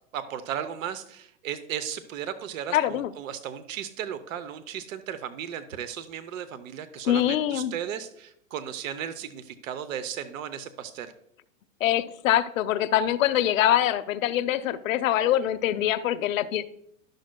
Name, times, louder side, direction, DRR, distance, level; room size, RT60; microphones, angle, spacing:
voice 1, 0.1-11.1, right 9 dB, 70° right, 12 dB, 0.7 m, -35 dB
voice 2, 2.7-3.1 7.1-7.8 11.8-16.6, left 12 dB, 75° left, 11 dB, 0.6 m, -24 dB
11.5 x 6.4 x 2.2 m, 0.74 s
hypercardioid pair, 130°, 41 cm